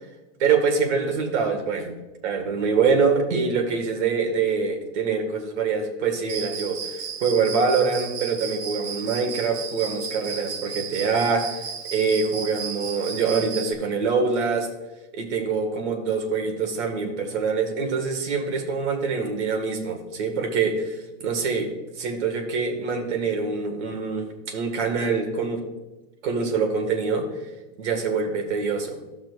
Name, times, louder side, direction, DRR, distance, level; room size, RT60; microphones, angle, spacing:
voice 1, 0.4-2.0 2.2-14.7 15.1-20.9 21.2-21.7 22.0-25.6 26.2-27.3 27.8-29.0, right 5 dB, 60° right, 4 dB, 1.8 m, -25 dB
Cricket, 6.3-13.7, right 7 dB, 25° right, 0.5 m, -34 dB
13.5 x 5.9 x 2.4 m, 1.1 s
supercardioid pair, 155°, 38 cm